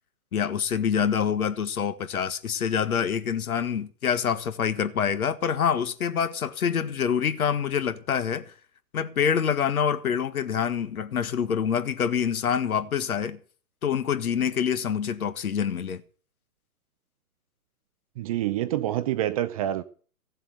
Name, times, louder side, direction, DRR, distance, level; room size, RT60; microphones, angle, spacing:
voice 1, 0.3-8.5 8.9-13.4 13.8-16.0, left 7 dB, 65° left, 1.6 m, -26 dB
voice 2, 18.2-19.8, right 13 dB, 25° right, 0.6 m, -27 dB
15.5 x 7.7 x 7.8 m
figure-of-eight pair, 125°, 46 cm